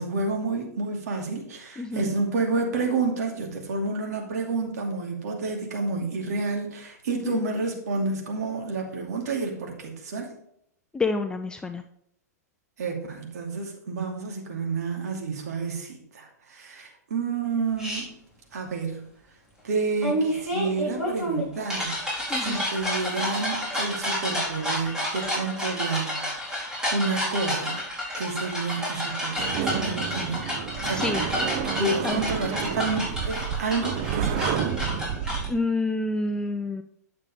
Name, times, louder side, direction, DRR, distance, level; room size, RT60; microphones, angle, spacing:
voice 1, 0.0-10.3 12.8-18.2 18.5-19.0 19.6-22.0 22.4-26.3 26.9-27.8 28.2-30.5 30.8-31.0 31.6-34.6, right 3 dB, 70° right, 1 dB, 2.5 m, -29 dB
voice 2, 1.8-2.1 7.1-7.4 10.9-11.8 22.3-22.6 30.9-31.3 32.0-32.2 35.5-36.8, left 3 dB, 10° left, 7 dB, 0.5 m, -28 dB
sound 1, 17.8-18.0 20.0-35.5, equal, 10° right, 4.1 m, -30 dB
sound 2, 29.4-35.5, right 8 dB, 45° right, 0.8 m, -30 dB
9.7 x 7.3 x 3.5 m, 0.72 s
hypercardioid pair, 115°, 9 cm